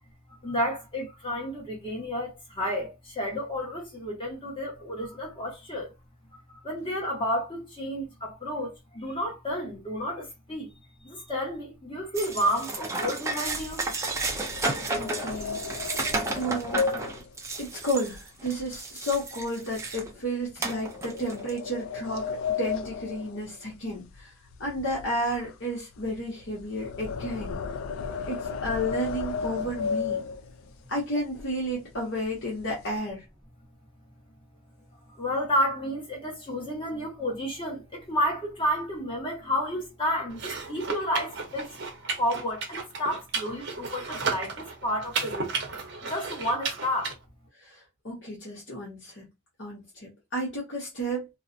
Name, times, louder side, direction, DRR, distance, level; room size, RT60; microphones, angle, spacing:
voice 1, 0.3-5.9 6.3-10.7 11.0-13.9 35.1-41.7 42.2-45.5 46.1-47.1, equal, 25° left, 1.0 m, -31 dB
sound 1, 12.2-20.1 20.6-21.6, right 2 dB, 15° right, 0.4 m, -32 dB
sound 2, 13.4-18.8 19.1-19.4 19.9-20.1 20.9-24.2 24.5-30.7 31.3-31.4 31.7-32.0 32.3-33.0, left 5 dB, 85° left, 0.3 m, -34 dB
voice 2, 14.3-15.9 16.3-16.8 17.6-24.3 24.6-27.6 28.3-30.2 30.9-33.2 47.6-49.3 49.6-51.3, equal, 60° left, 0.9 m, -32 dB
sound 3, 40.3-47.1, right 4 dB, 60° right, 0.7 m, -34 dB
2.4 x 2.1 x 2.5 m
head